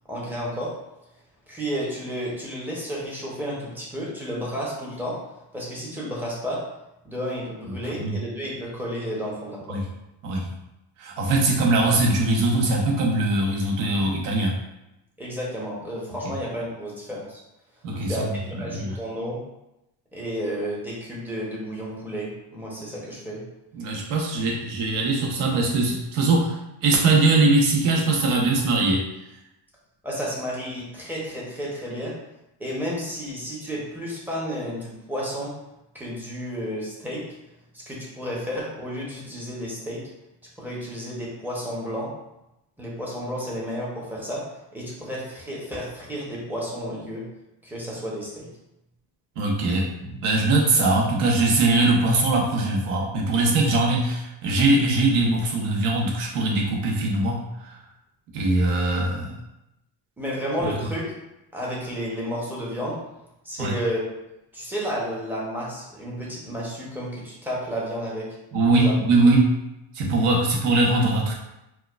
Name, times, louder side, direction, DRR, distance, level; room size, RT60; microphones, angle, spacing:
voice 1, 0.1-0.7 1.5-5.2 5.5-6.6 7.0-9.8 15.2-17.4 18.1-19.4 20.1-23.4 24.4-24.5 30.0-32.1 32.6-35.5 35.9-37.2 37.9-40.0 40.6-42.1 42.8-44.4 44.7-47.2 47.6-48.5 60.2-61.1 61.5-63.0 63.4-64.0 64.5-68.3 68.7-68.9, equal, 5° right, -6 dB, 0.6 m, -31 dB
voice 2, 7.6-8.1 9.7-9.8 10.2-10.5 11.0-14.5 16.2-16.3 17.8-18.9 23.8-26.5 26.8-29.0 49.4-57.8 58.3-59.3 63.6-63.7 68.5-69.5 69.9-71.3, right 2 dB, 90° right, -1 dB, 1.0 m, -21 dB
4.5 x 2.2 x 2.3 m, 0.90 s
cardioid pair, 155°, 49 cm